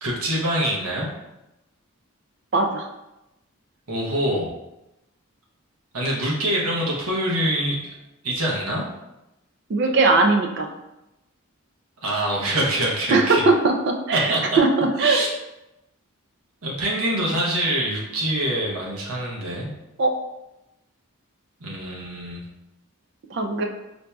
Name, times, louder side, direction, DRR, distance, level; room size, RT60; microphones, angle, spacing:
voice 1, 0.0-1.1 3.9-4.5 5.9-7.9 8.2-8.9 12.0-13.5 14.1-14.4 15.0-15.3 16.6-19.7 21.6-22.4, right 1 dB, 80° right, -3 dB, 0.8 m, -25 dB
voice 2, 2.5-2.9 9.7-10.7 13.1-15.3 20.0-20.2 23.3-23.6, right 3 dB, 50° right, 3 dB, 0.4 m, -20 dB
4.2 x 2.6 x 2.2 m, 0.93 s
head